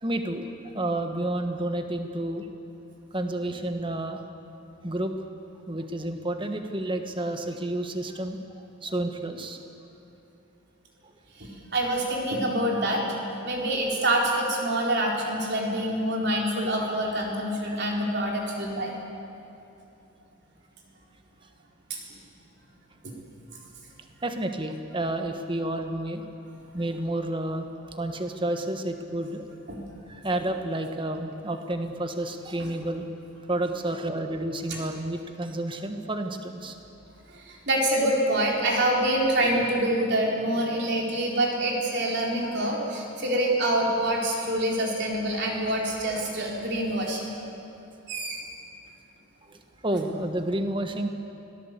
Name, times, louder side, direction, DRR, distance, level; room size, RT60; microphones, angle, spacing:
voice 1, 0.0-2.5 3.1-4.2 4.8-5.1 5.7-9.6 17.6-18.0 24.2-26.2 26.7-29.4 30.1-33.1 33.5-36.7 49.5-51.1, right 1 dB, 25° right, 6 dB, 1.4 m, -30 dB
voice 2, 11.4-13.1 13.4-18.9 21.9-22.0 23.0-23.1 29.7-29.8 34.7-34.8 37.3-47.3 48.1-48.4, right 1 dB, 50° right, -1 dB, 4.2 m, -26 dB
25.0 x 18.0 x 8.3 m, 2.8 s
head